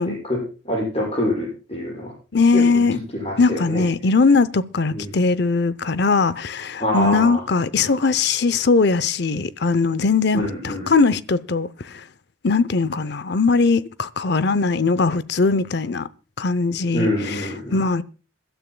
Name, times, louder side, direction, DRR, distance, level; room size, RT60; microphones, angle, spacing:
voice 1, 0.0-2.1 2.5-3.9 4.9-5.1 6.8-7.4 10.3-10.9 16.9-17.8, left 1 dB, 30° left, 6.8 m, -26 dB
voice 2, 2.3-3.0 3.4-12.0 12.4-16.1 16.4-17.5 17.7-18.0, left 4 dB, 55° left, 0.6 m, -20 dB
27.0 x 12.5 x 2.2 m
head